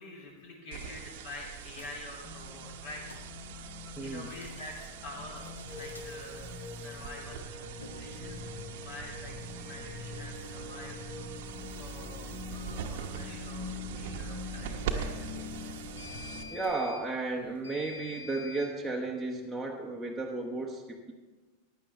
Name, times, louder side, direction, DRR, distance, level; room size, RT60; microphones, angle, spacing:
voice 1, 0.0-3.0 4.0-8.4 8.8-11.0 11.8-15.3 15.9-16.2, left 2 dB, 50° left, 0 dB, 3.1 m, -47 dB
sound 1, 0.7-16.7, right 8 dB, 50° right, 0.9 m, -43 dB
sound 2, 1.7-1.9 2.9-3.3 4.2-4.9 5.4-6.1 7.7-18.7, left 2 dB, 75° left, 1.3 m, -47 dB
sound 3, 2.2-16.4, left 3 dB, 20° left, 2.9 m, -45 dB
voice 2, 4.0-4.3 16.5-21.1, right 3 dB, 5° right, -2 dB, 1.0 m, -34 dB
15.0 x 10.5 x 3.4 m, 1.3 s
figure-of-eight pair, 90°, 0 cm